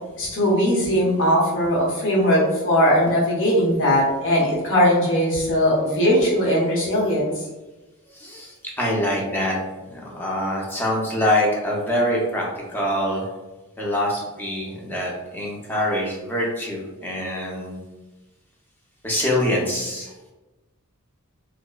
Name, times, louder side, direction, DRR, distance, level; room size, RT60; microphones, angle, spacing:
voice 1, 0.2-7.3, equal, 65° left, -5 dB, 0.9 m, -19 dB
voice 2, 8.1-9.6 9.9-13.3 13.8-17.8 19.0-20.1, left 1 dB, 10° left, -3 dB, 0.5 m, -25 dB
2.8 x 2.1 x 2.3 m, 1.1 s
head